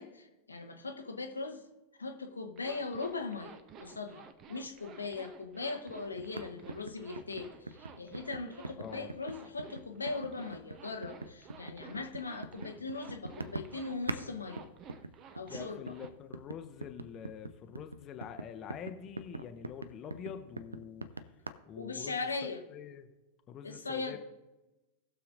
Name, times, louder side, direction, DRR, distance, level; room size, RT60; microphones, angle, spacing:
voice 1, 0.0-1.6 2.0-14.7 15.3-15.9 21.7-22.6 23.6-24.2, left 3 dB, 80° left, 5 dB, 1.0 m, -39 dB
Zipper (clothing), 2.6-16.1, right 5 dB, 35° right, 0.8 m, -53 dB
sound 1, 6.2-14.3 14.5-21.5, right 2 dB, 80° right, 0.5 m, -43 dB
voice 2, 8.8-9.1 15.4-21.2 21.7-23.1 23.5-24.2, left 8 dB, 30° left, 7 dB, 0.8 m, -46 dB
19.0 x 6.9 x 2.6 m, 1.1 s
figure-of-eight pair, 90°, 0 cm